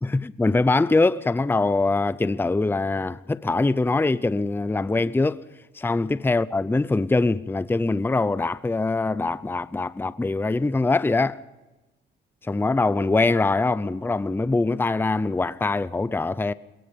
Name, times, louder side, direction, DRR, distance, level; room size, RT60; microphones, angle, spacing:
voice 1, 0.0-5.4 5.7-11.4 12.5-16.5, left 3 dB, 10° left, 0.6 m, -23 dB
22.5 x 22.0 x 5.3 m
cardioid pair, 90°, 20 cm